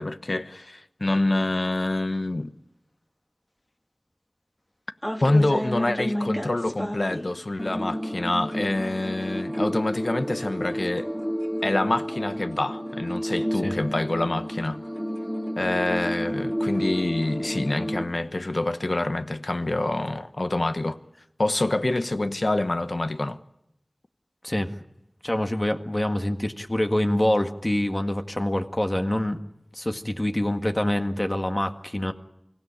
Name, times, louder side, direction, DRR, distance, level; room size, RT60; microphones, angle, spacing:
voice 1, 0.0-2.5 5.2-11.1 11.6-14.8 15.6-21.0 21.4-23.4, left 2 dB, 70° left, 1.1 m, -26 dB
sound 1, 5.0-7.3 7.6-18.0, equal, 15° left, 3.6 m, -30 dB
voice 2, 24.4-24.8 25.2-29.4 29.7-32.1, left 1 dB, 30° left, 1.8 m, -25 dB
25.0 x 16.5 x 10.0 m
wide cardioid pair, 45°, 0 cm